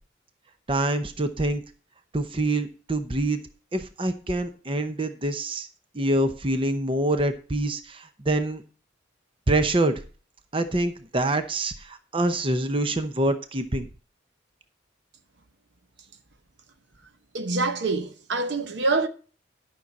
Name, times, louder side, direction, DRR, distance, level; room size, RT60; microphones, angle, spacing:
voice 1, 0.7-1.6 2.1-3.4 3.7-5.7 5.9-8.6 9.5-9.9 10.5-13.9, right 1 dB, 30° right, 0.8 m, -25 dB
voice 2, 17.3-19.1, right 3 dB, 65° right, 0.8 m, -25 dB
12.0 x 6.0 x 4.2 m
head